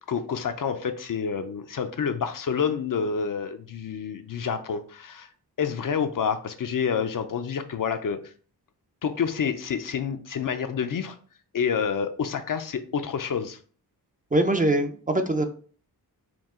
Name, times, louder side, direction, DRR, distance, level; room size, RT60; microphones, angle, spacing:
voice 1, 0.1-5.3 5.6-8.3 9.0-11.2 11.5-13.6, left 6 dB, 55° left, 8 dB, 0.6 m, -28 dB
voice 2, 14.3-15.5, right 1 dB, 20° right, 6 dB, 0.5 m, -23 dB
4.6 x 2.3 x 3.6 m, 0.43 s
wide cardioid pair, 80°, 39 cm